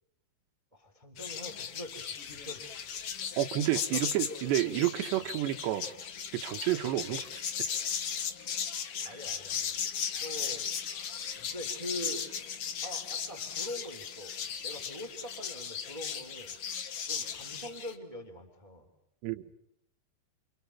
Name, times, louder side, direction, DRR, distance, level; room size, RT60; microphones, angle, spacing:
voice 1, 0.7-2.8 3.7-4.8 5.1-5.3 9.0-9.7 10.2-10.7 11.4-12.3 12.8-14.4 14.6-16.6 17.0-18.9, left 1 dB, 10° right, 6 dB, 2.8 m, -43 dB
sound 1, 1.2-18.0, left 7 dB, 70° left, 1.4 m, -37 dB
voice 2, 3.4-5.9 6.3-7.3 9.0-9.2 19.2-19.5, right 14 dB, 90° right, 8 dB, 3.4 m, -30 dB
29.5 x 28.0 x 5.8 m, 0.77 s
omnidirectional pair, 4.9 m